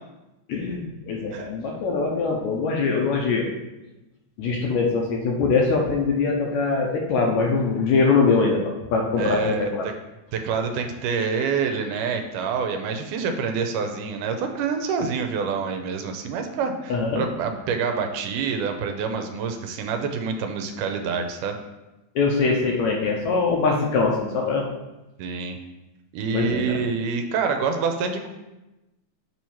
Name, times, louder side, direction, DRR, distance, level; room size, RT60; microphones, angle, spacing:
voice 1, 0.5-3.5 4.4-9.9 16.9-17.2 22.2-24.7 26.3-26.8, left 4 dB, 75° left, 0 dB, 1.8 m, -22 dB
voice 2, 9.2-9.9 10.3-21.6 25.2-25.6 26.1-28.3, right 5 dB, 85° right, 6 dB, 2.1 m, -27 dB
6.9 x 3.1 x 5.6 m, 1.0 s
omnidirectional pair, 3.7 m